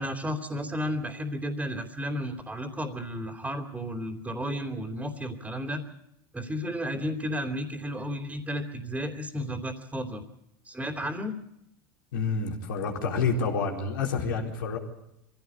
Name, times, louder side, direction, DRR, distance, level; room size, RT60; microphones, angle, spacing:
voice 1, 0.0-5.8 6.3-10.2 10.6-11.4, equal, 10° right, 0 dB, 3.0 m, -33 dB
voice 2, 12.1-14.8, left 5 dB, 80° left, 0 dB, 4.2 m, -28 dB
23.5 x 16.5 x 8.4 m, 0.83 s
hypercardioid pair, 90°, 11 cm